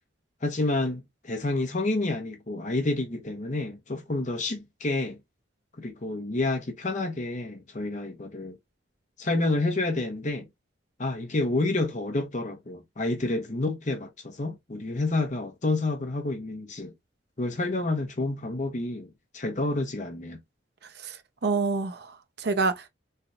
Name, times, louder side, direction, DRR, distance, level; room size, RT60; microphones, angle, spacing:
voice 1, 0.4-5.2 5.8-8.6 9.2-10.5 11.0-16.9 17.4-20.4, left 2 dB, 40° left, 0.8 m, -29 dB
voice 2, 21.4-22.9, right 4 dB, 55° right, 0.6 m, -27 dB
3.3 x 2.3 x 2.6 m
head